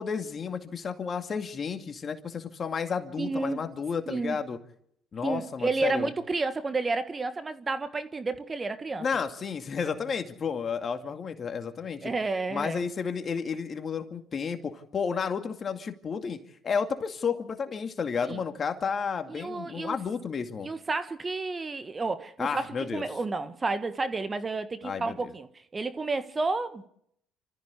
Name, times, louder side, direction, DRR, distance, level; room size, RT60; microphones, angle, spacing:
voice 1, 0.0-4.6 5.1-6.1 9.0-12.1 12.5-16.4 16.6-20.7 22.4-23.0 24.8-25.3, left 6 dB, 40° left, 2.3 m, -32 dB
voice 2, 3.2-3.6 4.1-4.4 5.2-9.0 12.0-12.8 18.2-18.4 19.3-20.0 20.6-26.9, right 3 dB, 30° right, 1.6 m, -31 dB
27.0 x 14.0 x 8.3 m
supercardioid pair, 75°, 0 cm